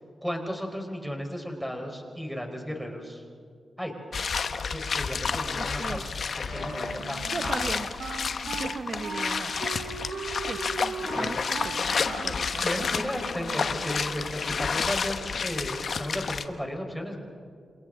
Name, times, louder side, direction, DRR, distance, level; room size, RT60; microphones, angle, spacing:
voice 1, 0.2-3.2 3.8-3.9 4.7-7.5 11.1-11.4 12.6-17.2, equal, ahead, 2 dB, 4.4 m, -34 dB
sound 1, 4.1-16.4, left 5 dB, 65° left, 1.1 m, -30 dB
voice 2, 5.5-6.0 7.3-7.9 8.4-9.6 10.4-12.6, right 4 dB, 60° right, 9 dB, 1.0 m, -37 dB
Wind instrument woodwind instrument, 6.5-14.0, right 4 dB, 90° right, 2.4 m, -38 dB
28.5 x 27.0 x 3.8 m, 2.2 s
cardioid pair, 55°, 0 cm